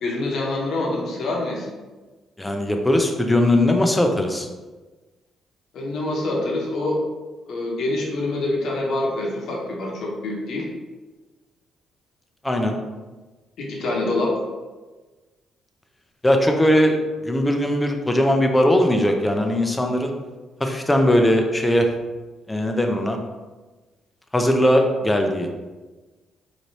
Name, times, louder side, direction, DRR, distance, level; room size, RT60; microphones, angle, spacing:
voice 1, 0.0-1.7 5.7-7.0 7.5-10.7 13.6-14.4, left 2 dB, 70° left, -2 dB, 1.0 m, -25 dB
voice 2, 2.4-4.5 12.4-12.8 16.2-17.0 17.2-20.1 20.6-21.9 22.5-23.2 24.3-25.5, left 1 dB, 10° left, 3 dB, 0.5 m, -19 dB
4.0 x 3.1 x 2.7 m, 1.2 s
cardioid pair, 90°, 0 cm